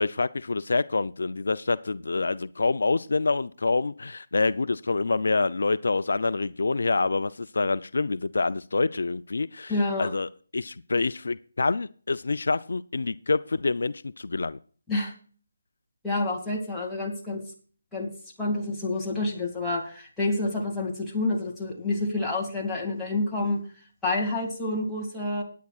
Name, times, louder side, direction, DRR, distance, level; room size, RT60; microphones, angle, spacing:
voice 1, 0.0-9.7 10.0-14.6, left 3 dB, 75° left, 15 dB, 0.4 m, -26 dB
voice 2, 9.7-10.1 14.9-15.1 16.0-17.4 17.9-18.1 18.4-23.6 24.0-25.4, left 2 dB, 5° left, -5 dB, 2.3 m, -28 dB
18.5 x 9.4 x 2.4 m, 0.42 s
figure-of-eight pair, 160°, 0 cm